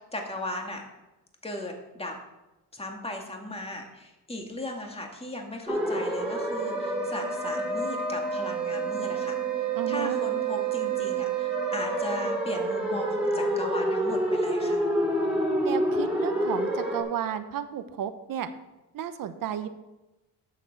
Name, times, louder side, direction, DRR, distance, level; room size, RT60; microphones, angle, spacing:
voice 1, 0.1-0.9 1.4-2.2 2.7-14.8, left 1 dB, 15° left, 2 dB, 2.2 m, -37 dB
sound 1, 5.7-17.0, right 2 dB, 5° right, 3.4 m, -28 dB
voice 2, 9.7-10.2 15.6-18.5 18.9-19.7, right 9 dB, 65° right, 10 dB, 1.0 m, -33 dB
8.6 x 7.2 x 6.6 m, 1.0 s
cardioid pair, 85°, 37 cm